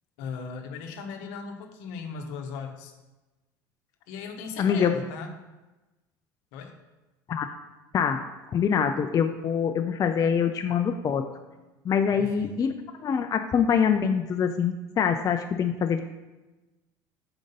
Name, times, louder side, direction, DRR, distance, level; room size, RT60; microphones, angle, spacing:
voice 1, 0.2-2.9 4.1-5.3 6.5-6.7 12.1-12.5, left 5 dB, 70° left, 4 dB, 0.8 m, -38 dB
voice 2, 4.6-5.0 7.3-7.5 7.9-8.2 8.5-11.3 11.8-12.7 13.0-16.0, left 7 dB, 35° left, 6 dB, 0.4 m, -24 dB
4.8 x 3.7 x 5.4 m, 1.1 s
hypercardioid pair, 80°, 11 cm